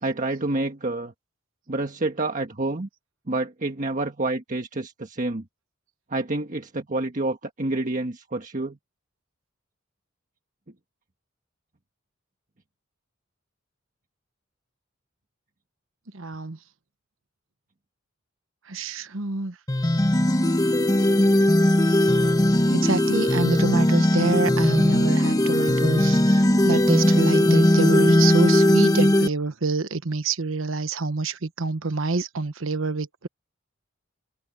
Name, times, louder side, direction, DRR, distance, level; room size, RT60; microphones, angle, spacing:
voice 1, 0.0-1.1 1.7-2.9 3.3-5.4 6.1-8.8, right 2 dB, 40° right, 1.4 m, -28 dB
voice 2, 16.1-16.6 18.7-19.5 22.7-33.3, right 3 dB, 80° right, 1.1 m, -27 dB
sound 1, 19.7-29.3, left 1 dB, 20° left, 1.2 m, -19 dB
head